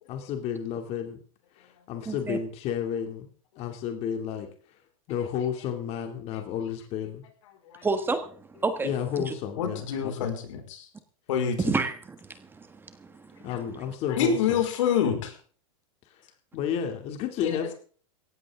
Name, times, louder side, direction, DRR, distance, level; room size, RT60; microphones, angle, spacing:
voice 1, 0.1-1.2 1.5-3.3 3.6-4.5 5.1-7.2 8.8-10.3 13.4-14.6 16.1-16.2 16.5-17.7, left 8 dB, 40° left, 5 dB, 2.5 m, -31 dB
voice 2, 2.1-2.4 7.8-8.9 9.2-9.3 11.6-13.1 13.4-13.5, right 4 dB, 10° right, 9 dB, 1.4 m, -30 dB
voice 3, 9.6-10.8 11.3-11.6 14.2-15.3 17.4-17.5, left 7 dB, 65° left, 4 dB, 5.0 m, -26 dB
17.5 x 15.0 x 3.7 m, 0.43 s
hypercardioid pair, 135°, 17 cm